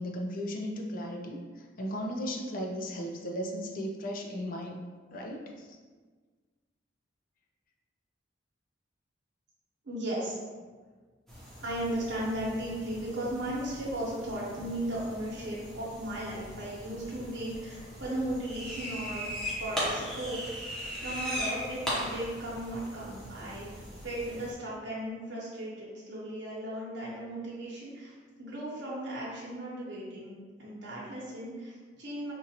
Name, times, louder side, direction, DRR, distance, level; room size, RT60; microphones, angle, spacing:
voice 1, 0.0-4.8 5.1-5.8, equal, 50° left, 1 dB, 0.4 m, -36 dB
voice 2, 9.8-10.4 11.6-19.3 19.6-20.6 21.0-23.7 24.0-28.1 28.4-32.3, right 1 dB, 80° right, -6 dB, 1.0 m, -36 dB
sound 1, 11.3-24.5, equal, ahead, 0.9 m, -39 dB
4.5 x 2.5 x 2.8 m, 1.4 s
head